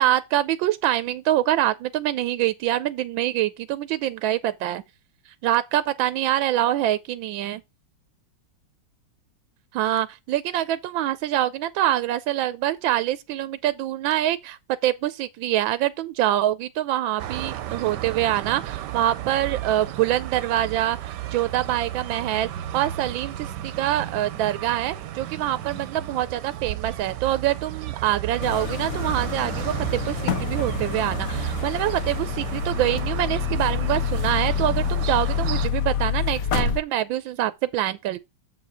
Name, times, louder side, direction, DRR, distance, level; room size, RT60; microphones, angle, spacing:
voice 1, 0.0-4.8 5.4-7.6 9.7-14.6 14.8-38.2, right 13 dB, 85° right, 1.4 m, -25 dB
sound 1, 17.2-35.7, right 12 dB, 70° right, 1.2 m, -33 dB
sound 2, 28.4-36.8, left 8 dB, 55° left, 1.3 m, -27 dB
7.5 x 4.9 x 4.1 m
omnidirectional pair, 2.1 m